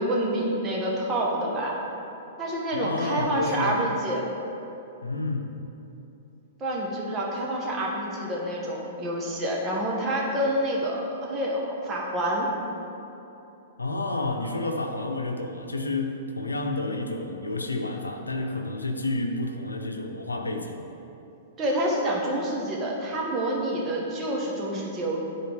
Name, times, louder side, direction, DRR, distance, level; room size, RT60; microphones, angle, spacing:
voice 1, 0.0-1.8 2.4-4.2 6.6-12.5 21.6-25.2, right 1 dB, 25° right, -3 dB, 1.5 m, -27 dB
voice 2, 2.7-3.8 5.0-5.5 13.8-20.8, left 2 dB, 90° left, 3 dB, 0.7 m, -30 dB
10.0 x 4.2 x 3.6 m, 2.9 s
figure-of-eight pair, 110°, 0 cm